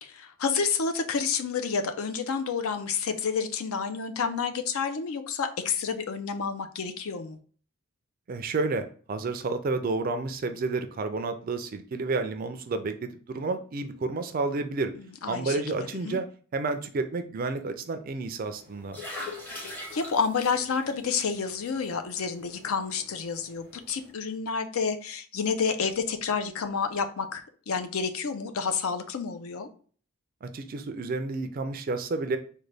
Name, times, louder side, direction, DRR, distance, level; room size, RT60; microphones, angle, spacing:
voice 1, 0.0-7.4 15.2-15.6 16.0-16.2 19.7-29.7, left 5 dB, 70° left, 0.5 m, -29 dB
voice 2, 8.3-14.9 15.3-16.3 16.5-19.0 30.4-32.4, right 3 dB, 40° right, 0.3 m, -30 dB
sound 1, 18.5-24.1, left 2 dB, 10° left, 0.7 m, -44 dB
3.8 x 2.2 x 3.2 m
head